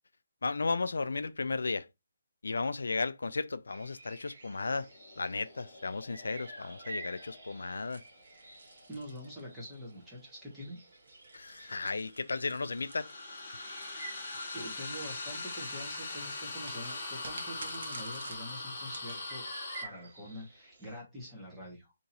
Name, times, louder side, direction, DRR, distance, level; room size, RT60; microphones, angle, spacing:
voice 1, 0.4-1.9 2.4-4.9 5.2-8.0 11.3-13.1, left 3 dB, 85° left, 0.3 m, -34 dB
sound 1, 3.7-21.0, right 2 dB, 35° right, 1.6 m, -52 dB
sound 2, 4.7-9.9 12.3-19.8, left 2 dB, 30° left, 1.0 m, -42 dB
sound 3, 7.9-9.9 10.9-14.6 16.6-19.2, right 3 dB, 55° right, 0.9 m, -51 dB
voice 2, 8.9-10.9 11.6-11.8 14.5-19.4 19.8-21.9, equal, 5° right, 1.0 m, -45 dB
2.9 x 2.7 x 3.9 m
hypercardioid pair, 175°, 0 cm